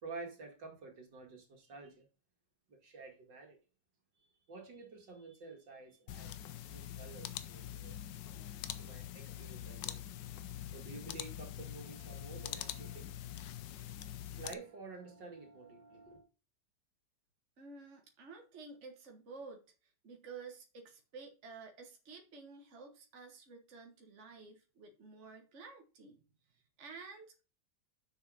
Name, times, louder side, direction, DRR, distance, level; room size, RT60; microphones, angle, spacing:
voice 1, 0.0-2.1 2.7-3.6 4.5-8.0 8.8-10.0 10.7-13.1 14.3-16.3, right 3 dB, 80° right, 2.9 m, -50 dB
sound 1, 6.1-14.5, left 11 dB, 85° left, 1.4 m, -44 dB
voice 2, 17.6-26.2 26.5-27.4, right 4 dB, 45° right, 1.6 m, -52 dB
7.0 x 6.3 x 5.0 m
omnidirectional pair, 1.9 m